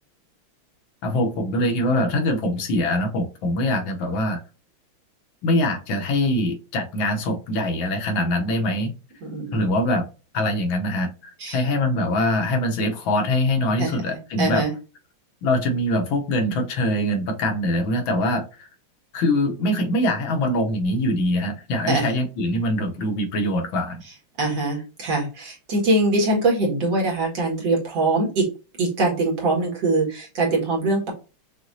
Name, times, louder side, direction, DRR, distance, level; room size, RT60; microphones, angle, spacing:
voice 1, 1.0-4.4 5.4-8.9 9.5-10.0 10.3-14.6 15.4-18.7 19.1-24.0, left 1 dB, 70° left, 4 dB, 1.6 m, -23 dB
voice 2, 9.2-9.6 11.4-11.6 13.8-14.7 21.9-22.1 24.4-28.5 28.8-31.1, right 2 dB, 60° right, -2 dB, 2.4 m, -23 dB
6.0 x 2.8 x 2.6 m, 0.32 s
omnidirectional pair, 2.3 m